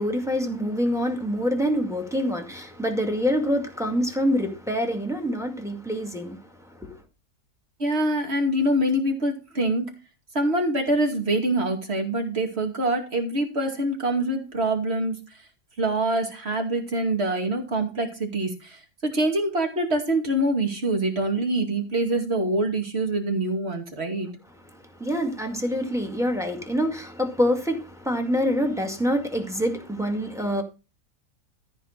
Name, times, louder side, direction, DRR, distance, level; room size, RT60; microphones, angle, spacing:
voice 1, 0.0-6.4 6.7-6.9 25.0-30.6, equal, ahead, 2.0 m, -26 dB
voice 2, 7.8-9.8 10.3-15.2 15.8-24.3, right 1 dB, 40° right, 2.7 m, -25 dB
14.0 x 4.7 x 6.6 m
omnidirectional pair, 1.7 m